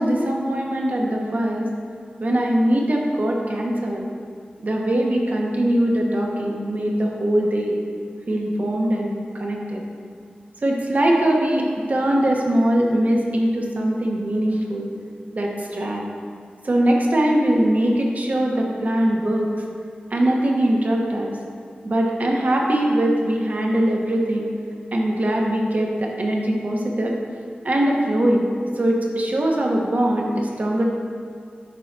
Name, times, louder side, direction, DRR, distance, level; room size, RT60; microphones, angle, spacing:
voice 1, 0.0-1.7 2.2-4.1 4.6-7.8 8.3-9.8 10.6-14.9 15.3-16.1 16.6-19.5 20.1-21.4 21.8-24.5 24.9-27.2 27.6-28.5 28.8-30.8, right 1 dB, 55° right, -1 dB, 1.0 m, -21 dB
9.2 x 5.7 x 2.7 m, 2.1 s
wide cardioid pair, 90°, 3 cm